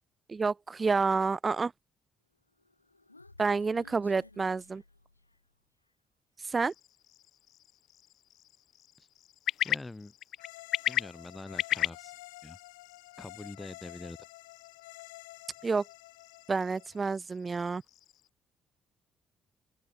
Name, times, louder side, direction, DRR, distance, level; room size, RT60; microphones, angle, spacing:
voice 1, 0.3-1.7 3.4-4.8 6.5-6.7 15.6-15.8 16.5-17.8, right 4 dB, 30° right, 0.4 m, -29 dB
Human voice, 2.5-5.5, left 2 dB, 90° left, 3.0 m, -56 dB
sound 1, 6.6-18.3, left 12 dB, 60° left, 1.5 m, -38 dB
voice 2, 9.6-10.1 10.9-12.1 12.4-12.6 13.2-14.2, left 2 dB, 15° left, 1.6 m, -44 dB
sound 2, 10.4-17.1, left 21 dB, 75° left, 0.6 m, -50 dB
open air
figure-of-eight pair, 45°, 0 cm